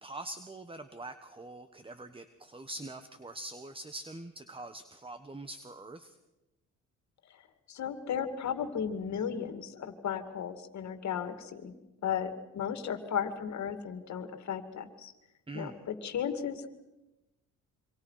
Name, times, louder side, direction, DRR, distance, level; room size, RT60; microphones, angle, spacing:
voice 1, 0.0-6.2 15.5-15.8, right 2 dB, 20° right, 10 dB, 1.4 m, -44 dB
voice 2, 7.3-11.8 12.0-15.1 15.5-16.7, left 8 dB, 65° left, 9 dB, 2.4 m, -35 dB
27.0 x 25.0 x 5.8 m, 0.99 s
cardioid pair, 90°, 30 cm